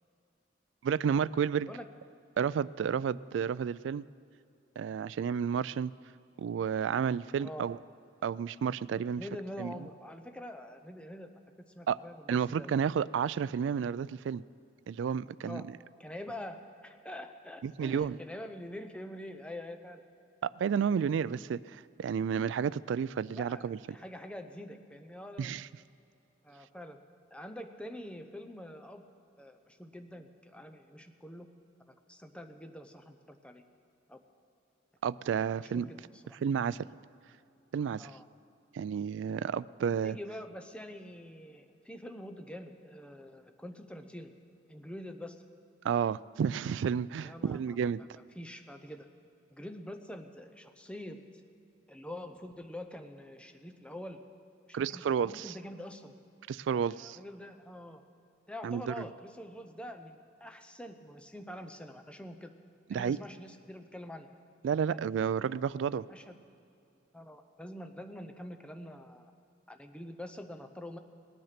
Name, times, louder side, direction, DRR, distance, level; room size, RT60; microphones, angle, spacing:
voice 1, 0.8-1.7 2.4-4.0 4.8-5.9 6.4-7.8 8.2-9.2 9.6-9.7 11.9-12.0 12.3-14.4 14.9-15.6 17.6-18.2 20.4-23.8 25.4-25.7 35.0-35.9 36.4-36.8 37.7-38.1 38.7-40.2 45.8-48.0 54.7-55.5 56.5-57.2 58.6-58.9 62.9-63.2 64.6-66.0, right 7 dB, 75° right, 18 dB, 0.3 m, -31 dB
voice 2, 9.2-11.3 11.6-12.8 15.4-15.7 16.0-20.0 23.3-25.5 26.4-27.0 27.3-29.0 29.4-31.5 31.9-33.6 34.1-34.2 35.6-36.2 38.0-38.3 40.0-44.3 44.7-45.4 47.2-47.9 48.4-49.1 49.5-51.2 51.9-54.2 54.7-56.2 56.8-58.0 58.5-62.5 62.9-64.3 64.9-65.0 66.1-66.4 67.1-69.3 69.7-71.0, left 1 dB, 5° left, 6 dB, 0.7 m, -45 dB
19.0 x 9.4 x 5.8 m, 2.6 s
head